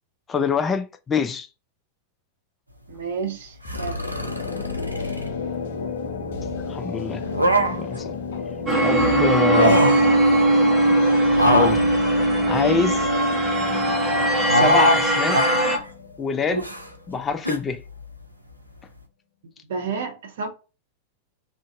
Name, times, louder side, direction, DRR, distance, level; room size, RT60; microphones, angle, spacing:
voice 1, 0.3-1.5 6.7-7.2 7.7-8.2 8.8-9.9 11.4-11.8 12.5-13.1 14.5-15.4 16.2-16.7 17.1-17.8, left 6 dB, 20° left, 0.4 m, -25 dB
voice 2, 2.9-4.0 19.7-20.5, right 5 dB, 60° right, 0.8 m, -30 dB
sound 1, 3.6-17.3, left 5 dB, 60° left, 0.7 m, -33 dB
sound 2, 3.7-5.3 7.1-8.0 9.3-10.1 11.3-13.1 14.5-15.0 15.3-15.8 16.5-16.9 17.4-17.6, equal, 85° right, 0.4 m, -23 dB
sound 3, 8.7-15.8, right 1 dB, 20° right, 0.9 m, -20 dB
2.5 x 2.4 x 2.4 m
figure-of-eight pair, 90°, 0 cm